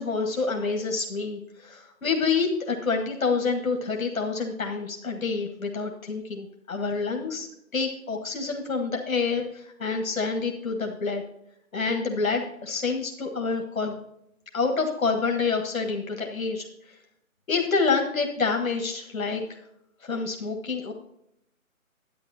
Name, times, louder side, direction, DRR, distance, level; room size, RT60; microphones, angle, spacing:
voice 1, 0.0-7.5 7.7-11.2 11.7-14.0 14.5-16.7 17.5-19.6 20.0-20.9, left 4 dB, 70° left, 3 dB, 1.6 m, -27 dB
11.0 x 8.9 x 2.8 m, 0.78 s
hypercardioid pair, 175°, 42 cm